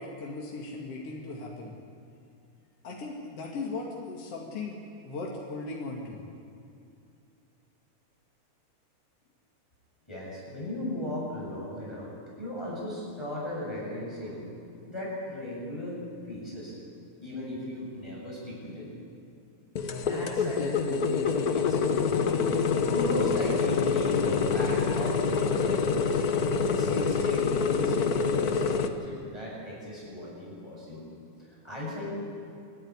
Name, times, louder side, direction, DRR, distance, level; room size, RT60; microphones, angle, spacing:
voice 1, 0.0-1.7 2.8-4.8 5.0-6.2, left 3 dB, 55° left, -2 dB, 3.0 m, -37 dB
voice 2, 10.1-12.1 12.4-14.5 14.8-16.8 17.2-18.9 19.9-22.5 22.9-26.2 26.7-31.0 31.4-32.1, left 1 dB, 10° left, -5 dB, 7.5 m, -37 dB
sound 1, 19.7-28.9, left 5 dB, 85° left, 0.8 m, -26 dB
27.5 x 12.0 x 9.8 m, 2.5 s
omnidirectional pair, 3.3 m